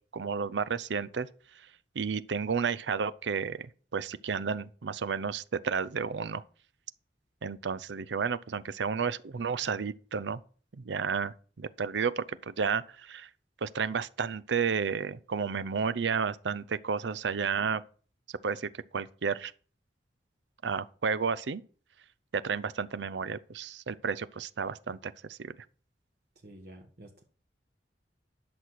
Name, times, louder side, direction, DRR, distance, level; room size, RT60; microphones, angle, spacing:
voice 1, 0.1-1.3 2.0-6.4 7.4-10.4 10.7-13.3 13.6-17.8 18.4-19.5 20.6-21.6 22.3-25.6, right 6 dB, 90° right, 0.6 m, -32 dB
voice 2, 26.4-27.2, right 1 dB, 60° right, 1.3 m, -50 dB
11.0 x 6.3 x 5.9 m
head